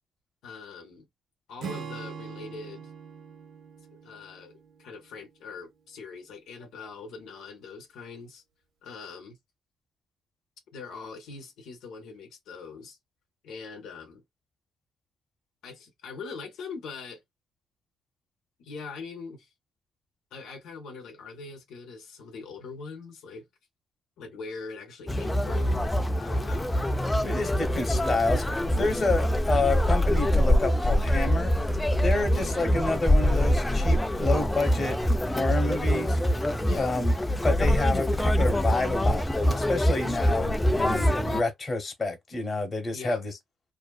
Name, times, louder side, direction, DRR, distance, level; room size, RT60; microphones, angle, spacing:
voice 1, 0.4-1.1 1.5-2.9 3.9-8.4 8.8-9.4 10.7-13.0 13.4-14.2 15.6-17.2 18.6-19.5 20.3-23.5 24.2-26.8 32.2-32.6 36.6-37.0 41.1-41.4 42.9-43.2, left 4 dB, 85° left, 0.7 m, -42 dB
Acoustic guitar / Strum, 1.6-5.1, right 6 dB, 65° right, 0.9 m, -42 dB
Conversation, 25.1-41.4, equal, 15° left, 0.4 m, -24 dB
voice 2, 27.2-31.5 32.0-34.9 35.3-36.5 36.7-37.1 37.4-43.3, left 3 dB, 35° left, 1.0 m, -29 dB
2.6 x 2.3 x 2.3 m
cardioid pair, 90°, 0 cm